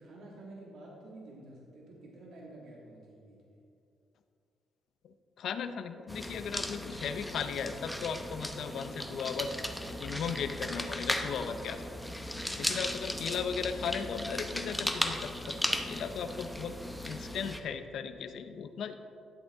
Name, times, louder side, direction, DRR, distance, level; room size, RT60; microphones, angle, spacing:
voice 1, 0.0-3.6, right 2 dB, 75° right, -3 dB, 1.8 m, -50 dB
voice 2, 5.0-9.5 10.0-11.8 12.5-16.7 17.0-18.9, left 6 dB, 70° left, 9 dB, 0.6 m, -37 dB
sound 1, 6.1-17.6, left 1 dB, 5° left, 0.7 m, -36 dB
12.0 x 8.1 x 3.5 m, 2.6 s
cardioid pair, 90°, 0 cm